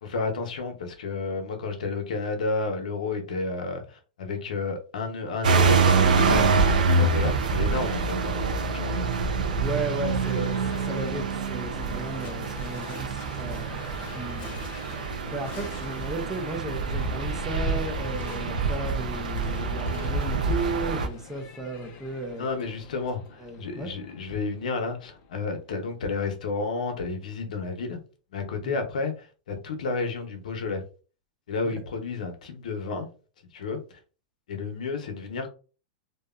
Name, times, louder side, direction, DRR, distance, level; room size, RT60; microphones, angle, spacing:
voice 1, 0.0-9.1 10.1-10.5 22.4-28.0 28.3-30.8 31.5-33.1 33.5-34.0 34.5-35.5, left 4 dB, 75° left, 0.7 m, -31 dB
sound 1, 5.4-21.1, right 4 dB, 85° right, 0.5 m, -26 dB
voice 2, 9.6-13.8 14.1-14.6 15.3-22.5 23.4-23.9 28.6-28.8, right 2 dB, 10° right, 0.5 m, -34 dB
Livestock farm animals working animals / Bell, 10.0-25.9, left 5 dB, 35° left, 0.6 m, -45 dB
2.8 x 2.1 x 2.3 m
hypercardioid pair, 135°, 4 cm